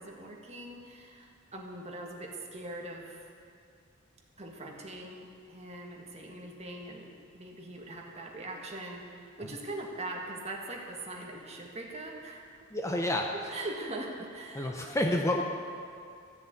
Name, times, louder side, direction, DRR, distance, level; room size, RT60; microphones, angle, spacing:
voice 1, 0.0-3.3 4.4-12.4 13.3-14.8, right 2 dB, 30° right, 0 dB, 1.7 m, -41 dB
voice 2, 12.7-13.3 14.5-15.4, left 1 dB, 15° left, 2 dB, 0.7 m, -29 dB
14.0 x 7.0 x 8.3 m, 2.4 s
head